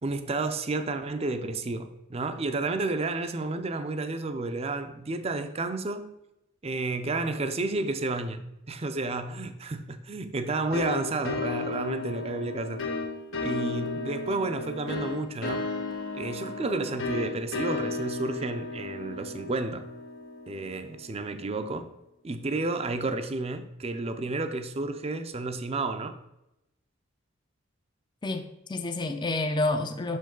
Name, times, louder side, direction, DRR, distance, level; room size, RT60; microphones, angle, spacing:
voice 1, 0.0-6.1 6.6-12.8 13.4-15.7 16.1-19.9 20.5-21.9 22.2-26.2, right 2 dB, 30° right, 0.5 m, -31 dB
sound 1, 10.7-21.2, left 3 dB, 80° left, 1.1 m, -34 dB
voice 2, 28.2-30.2, left 2 dB, 25° left, 0.5 m, -29 dB
6.3 x 5.2 x 3.8 m
head